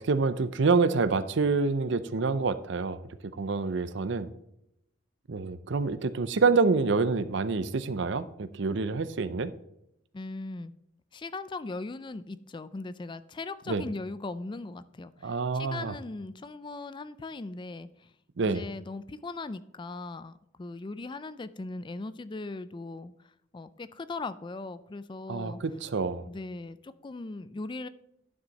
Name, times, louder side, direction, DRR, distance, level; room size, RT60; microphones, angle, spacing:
voice 1, 0.0-3.0 3.3-4.3 5.3-9.5 13.7-13.8 15.2-15.9 18.4-18.6 25.3-26.3, right 4 dB, 65° right, 15 dB, 0.6 m, -27 dB
voice 2, 10.1-10.7 11.1-18.1 18.4-25.6 26.3-27.9, left 3 dB, 25° left, 15 dB, 0.4 m, -39 dB
10.5 x 6.2 x 4.1 m, 0.80 s
head